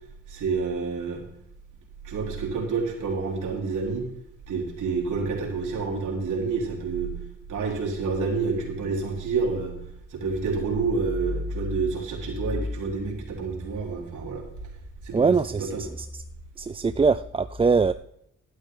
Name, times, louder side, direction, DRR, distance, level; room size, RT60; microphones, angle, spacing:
voice 1, 0.3-1.2 2.0-4.1 4.5-7.1 7.5-9.8 10.1-14.4 15.0-15.8, right 4 dB, 85° right, -1 dB, 3.4 m, -28 dB
voice 2, 15.1-15.9 16.6-17.9, right 5 dB, 20° right, 12 dB, 0.3 m, -22 dB
11.5 x 11.5 x 3.7 m, 0.76 s
cardioid pair, 80°, 30 cm